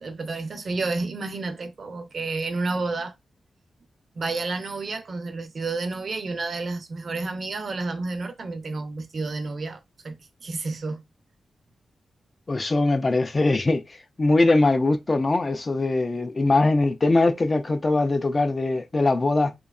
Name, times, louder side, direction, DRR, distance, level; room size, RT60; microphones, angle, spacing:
voice 1, 0.0-3.1 4.2-9.8 10.0-10.2 10.4-11.0, right 3 dB, 55° right, 0.5 m, -30 dB
voice 2, 12.5-19.5, left 2 dB, 30° left, 0.3 m, -22 dB
2.7 x 2.2 x 2.3 m
wide cardioid pair, 120°, 0 cm